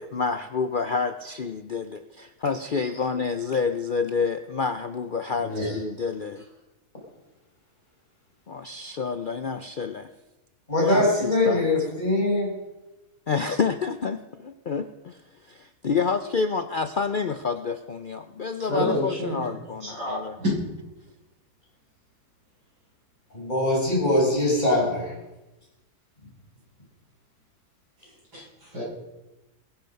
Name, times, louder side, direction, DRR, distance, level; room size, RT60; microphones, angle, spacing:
voice 1, 0.0-6.4 8.5-10.1 10.8-11.6 13.3-15.2 15.5-20.4, left 5 dB, 70° left, 9 dB, 0.4 m, -28 dB
voice 2, 5.4-5.8 10.7-12.5 23.3-25.1, left 1 dB, 25° left, -3 dB, 6.1 m, -22 dB
voice 3, 18.7-20.5 28.3-28.8, equal, 85° right, -6 dB, 8.5 m, -29 dB
22.5 x 10.5 x 5.4 m, 1.0 s
omnidirectional pair, 1.7 m